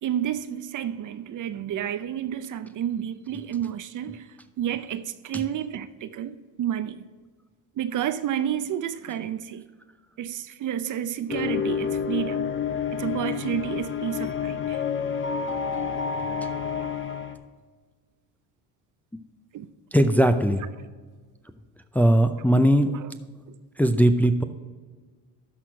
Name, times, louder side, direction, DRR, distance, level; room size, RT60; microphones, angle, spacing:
voice 1, 0.0-4.3 4.6-7.0 7.8-9.6 10.2-12.5 12.9-14.8 19.5-19.7 22.9-23.1, right 10 dB, 50° right, 0.6 m, -30 dB
sound 1, 11.3-17.4, left 7 dB, 30° left, 1.0 m, -29 dB
voice 2, 19.9-20.6 22.0-22.9 23.8-24.4, right 1 dB, 5° left, 0.5 m, -19 dB
12.5 x 4.3 x 4.9 m
supercardioid pair, 85°, 40 cm